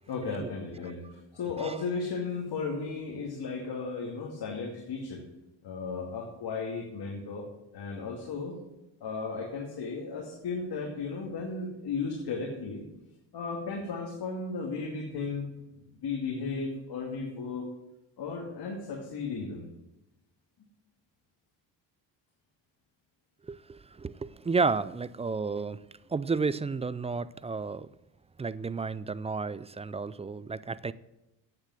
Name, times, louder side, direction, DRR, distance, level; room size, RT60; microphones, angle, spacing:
voice 1, 0.1-5.2 5.6-7.4 7.7-8.6 9.0-12.8 13.3-15.5 16.0-17.7 18.2-19.7, left 4 dB, 60° left, 0 dB, 2.4 m, -35 dB
voice 2, 1.5-1.8 23.5-25.8 26.1-27.9 28.4-30.9, right 4 dB, 15° right, 17 dB, 0.3 m, -32 dB
8.9 x 8.2 x 7.8 m, 0.95 s
supercardioid pair, 75°, 44 cm